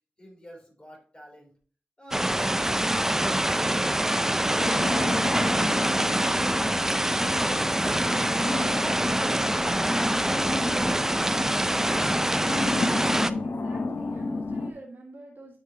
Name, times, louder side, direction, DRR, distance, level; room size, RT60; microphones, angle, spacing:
voice 1, 0.2-1.5 2.0-5.3 5.8-9.7 10.0-11.0, equal, 30° left, -1 dB, 3.5 m, -50 dB
sound 1, 2.1-13.3, right 1 dB, 10° right, 0.4 m, -25 dB
sound 2, 4.6-14.7, left 3 dB, 80° left, 0.7 m, -32 dB
voice 2, 13.4-15.6, right 2 dB, 70° right, -2 dB, 1.6 m, -47 dB
9.5 x 5.0 x 2.8 m, 0.42 s
wide cardioid pair, 60°, 4 cm